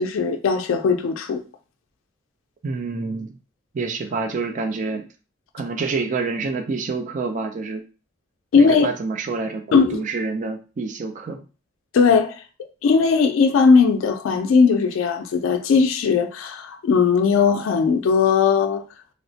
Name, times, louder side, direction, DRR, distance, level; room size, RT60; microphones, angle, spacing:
voice 1, 0.0-1.4 8.5-8.9 9.7-10.0 11.9-12.3 12.8-18.8, left 5 dB, 85° left, 0.3 m, -18 dB
voice 2, 2.6-3.4 3.7-5.1 5.5-7.8 8.6-11.4, right 4 dB, 40° right, 0.3 m, -27 dB
2.9 x 2.1 x 2.7 m
head